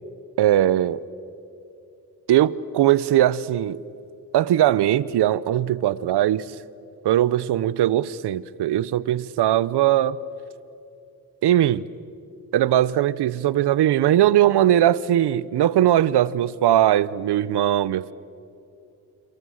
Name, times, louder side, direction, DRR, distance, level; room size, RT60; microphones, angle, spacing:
voice 1, 0.4-1.0 2.3-3.8 4.3-6.4 7.0-10.2 11.4-11.8 12.5-18.1, right 12 dB, 85° right, 0.8 m, -20 dB
29.0 x 29.0 x 6.4 m
cardioid pair, 95°, 39 cm